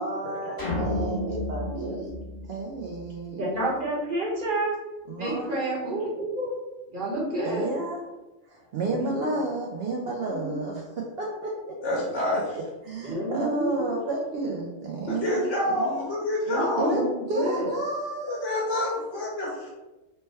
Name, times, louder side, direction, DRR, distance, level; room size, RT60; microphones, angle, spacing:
voice 1, 0.0-2.1 2.5-3.5 5.1-5.6 7.4-8.0 8.5-10.9 11.2-11.7 12.8-16.1 16.8-17.0 17.3-18.9, right 2 dB, 65° right, -1 dB, 0.7 m, -31 dB
sound 1, 0.6-3.1, left 1 dB, 20° left, 1.0 m, -31 dB
voice 2, 3.4-4.8 5.2-6.5 6.9-7.7 8.9-9.1 10.3-10.6 13.0-13.8 16.5-17.7, right 1 dB, 45° right, -6 dB, 1.2 m, -29 dB
voice 3, 11.8-12.5 15.1-17.0 18.2-19.7, left 1 dB, 70° left, -4 dB, 1.0 m, -27 dB
3.2 x 2.2 x 4.2 m, 1.1 s
omnidirectional pair, 1.3 m